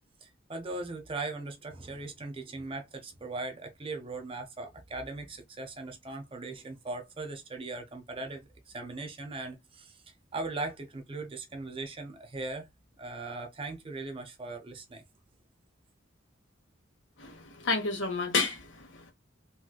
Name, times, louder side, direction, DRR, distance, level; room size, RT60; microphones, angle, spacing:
voice 1, 0.2-10.0 10.3-12.7 13.0-15.0, right 3 dB, 25° right, 0.7 m, -39 dB
voice 2, 17.2-19.1, left 4 dB, 70° left, 1.1 m, -31 dB
3.1 x 3.1 x 2.2 m
head